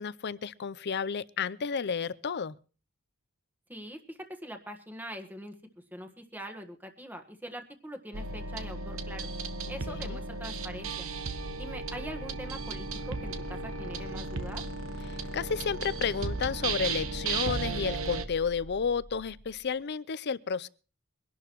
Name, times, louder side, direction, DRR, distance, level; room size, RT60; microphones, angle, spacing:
voice 1, 0.0-2.5 9.9-10.2 15.1-20.7, left 6 dB, 55° left, 0.6 m, -32 dB
voice 2, 3.7-9.3 9.7-11.1 11.6-14.6, equal, 10° right, 1.5 m, -43 dB
sound 1, 8.1-18.3, right 4 dB, 80° right, 1.1 m, -36 dB
sound 2, 10.7-19.6, equal, 70° left, 1.6 m, -43 dB
23.5 x 11.5 x 3.1 m
head